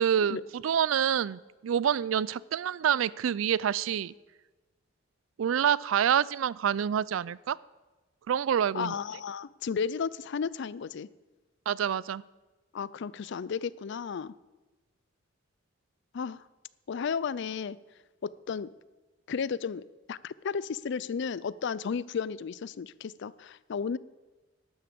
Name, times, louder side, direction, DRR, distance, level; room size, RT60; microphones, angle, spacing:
voice 1, 0.0-4.1 5.4-7.6 8.3-9.0 11.7-12.2, right 8 dB, 90° right, 21 dB, 0.4 m, -27 dB
voice 2, 8.7-11.1 12.7-14.3 16.1-16.4 16.9-17.8 18.2-18.7 19.3-24.0, left 6 dB, 65° left, 19 dB, 0.4 m, -33 dB
12.0 x 9.5 x 6.8 m, 1.2 s
head